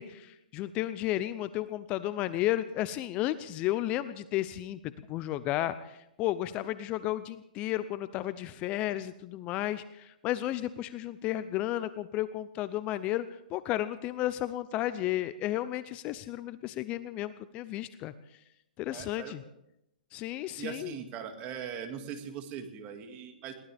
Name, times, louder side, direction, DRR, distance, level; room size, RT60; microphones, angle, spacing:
voice 1, 0.0-4.8 5.1-13.3 13.5-18.1 18.8-19.4 20.1-21.0, left 14 dB, 25° left, 14 dB, 0.6 m, -33 dB
voice 2, 18.9-19.4 20.6-23.5, right 8 dB, 30° right, 6 dB, 2.1 m, -40 dB
22.0 x 17.5 x 3.5 m, 0.83 s
hypercardioid pair, 150°, 5 cm